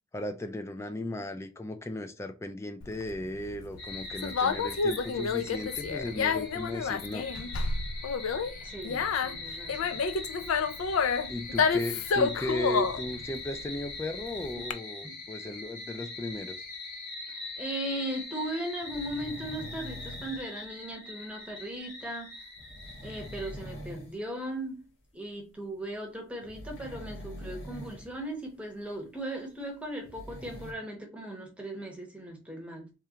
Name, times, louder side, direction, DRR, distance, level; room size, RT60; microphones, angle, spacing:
voice 1, 0.1-7.2 11.3-16.6, left 1 dB, 15° left, 0.3 m, -36 dB
Conversation, 2.8-14.7, left 5 dB, 85° left, 0.4 m, -30 dB
sound 1, 3.8-23.5, left 3 dB, 40° left, 1.8 m, -42 dB
voice 2, 8.6-10.1 15.0-15.2 17.3-22.3 23.0-24.8 25.1-32.9, right 1 dB, 5° right, 0.8 m, -38 dB
sound 2, 18.8-20.4 22.6-24.2 24.5-24.7 26.4-28.1 28.4-28.5 29.8-30.7, left 1 dB, 70° left, 1.3 m, -43 dB
3.6 x 3.3 x 2.8 m
head